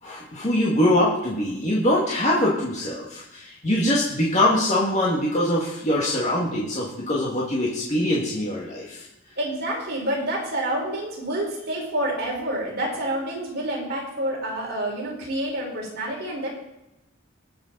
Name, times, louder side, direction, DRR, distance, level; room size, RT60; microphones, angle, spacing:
voice 1, 0.0-9.0, left 1 dB, 35° left, -5 dB, 2.0 m, -23 dB
voice 2, 9.4-16.6, right 1 dB, 55° right, -3 dB, 4.4 m, -28 dB
20.0 x 7.1 x 4.0 m, 0.88 s
head